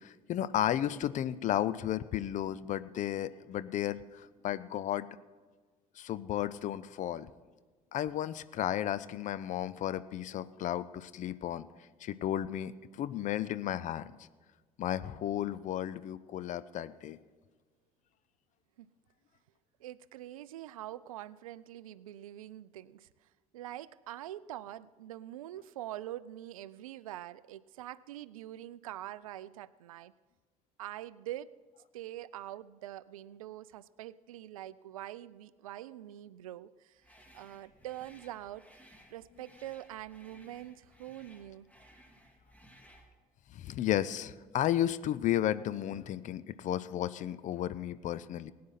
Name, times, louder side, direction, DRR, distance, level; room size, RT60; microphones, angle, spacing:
voice 1, 0.0-5.1 6.0-7.3 7.9-11.7 12.0-14.2 14.8-17.2 43.5-48.5, left 11 dB, 45° left, 16 dB, 0.6 m, -33 dB
voice 2, 19.8-23.1 23.5-30.1 30.8-31.5 31.9-37.0 37.3-38.6 39.1-41.7, right 13 dB, 75° right, 19 dB, 0.4 m, -44 dB
sound 1, 37.0-43.1, equal, 10° left, 2.4 m, -60 dB
21.0 x 9.4 x 4.2 m, 1.4 s
figure-of-eight pair, 55°, 18 cm